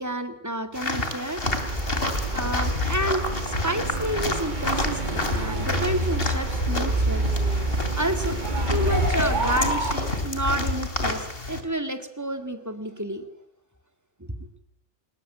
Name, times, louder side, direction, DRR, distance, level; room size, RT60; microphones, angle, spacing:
voice 1, 0.0-1.4 2.3-3.2 3.6-7.3 8.0-13.2 14.2-14.3, right 1 dB, 15° right, 8 dB, 2.2 m, -30 dB
sound 1, 0.7-11.6, left 2 dB, 50° left, 3.1 m, -29 dB
sound 2, 1.4-9.9, right 1 dB, 40° right, 2.2 m, -27 dB
21.0 x 20.5 x 9.0 m, 0.76 s
omnidirectional pair, 1.2 m